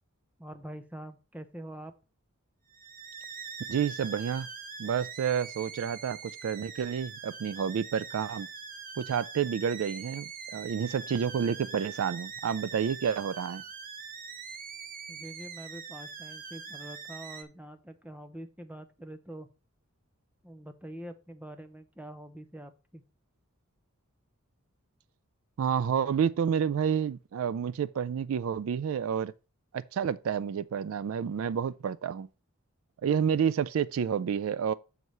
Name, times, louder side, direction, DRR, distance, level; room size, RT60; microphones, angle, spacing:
voice 1, 0.4-1.9 15.1-19.5 20.4-23.0, right 1 dB, 5° right, 0.6 m, -45 dB
sound 1, 2.7-17.4, right 5 dB, 40° right, 0.8 m, -43 dB
voice 2, 3.7-4.5 4.8-8.5 9.0-13.6 25.6-29.3 29.7-32.3 33.0-34.7, right 7 dB, 65° right, 0.3 m, -29 dB
6.7 x 4.7 x 5.3 m
head